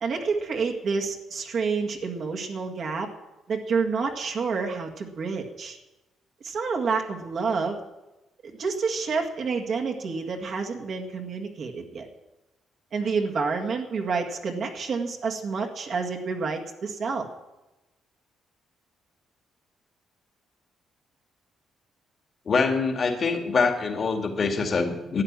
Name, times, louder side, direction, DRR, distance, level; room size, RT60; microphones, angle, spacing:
voice 1, 0.0-3.1 3.5-5.8 6.4-7.8 8.6-12.1 12.9-17.3, right 4 dB, 60° right, 1 dB, 1.8 m, -28 dB
voice 2, 22.5-25.2, left 4 dB, 45° left, 4 dB, 2.3 m, -24 dB
12.5 x 9.1 x 8.9 m, 1.1 s
cardioid pair, 90°, 0 cm